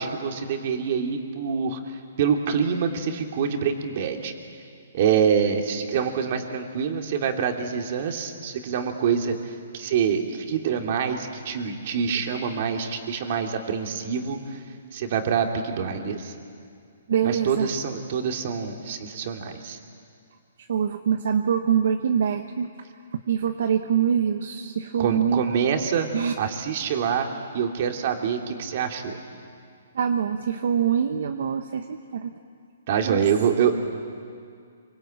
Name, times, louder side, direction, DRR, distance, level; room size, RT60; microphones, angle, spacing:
voice 1, 0.0-1.8 2.2-4.3 4.9-9.4 9.7-14.6 14.9-16.3 17.2-19.8 25.0-26.1 26.4-27.3 27.5-29.2 32.9-33.7, right 7 dB, 45° right, 3 dB, 2.9 m, -25 dB
voice 2, 17.1-17.7 20.7-22.7 23.3-25.4 26.1-26.3 29.9-32.3 33.0-33.2, right 8 dB, 65° right, 6 dB, 1.2 m, -24 dB
26.0 x 24.5 x 8.9 m, 2.3 s
hypercardioid pair, 155°, 0 cm